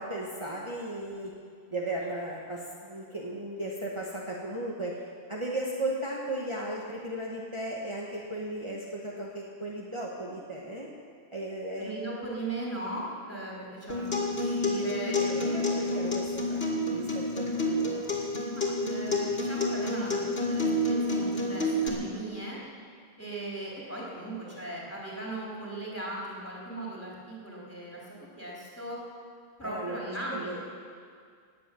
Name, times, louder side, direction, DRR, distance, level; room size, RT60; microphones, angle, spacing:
voice 1, 0.0-1.3 1.7-10.9 11.3-11.9 14.8-18.0 29.6-30.6, right 1 dB, 30° right, -4 dB, 1.6 m, -36 dB
voice 2, 11.8-16.1 18.5-22.6 23.2-28.0 28.4-29.0 29.6-30.6, right 2 dB, 15° left, -6 dB, 3.7 m, -38 dB
Acoustic guitar, 13.9-21.9, left 1 dB, 65° left, 2.6 m, -29 dB
19.5 x 7.8 x 8.5 m, 2.2 s
omnidirectional pair, 1.1 m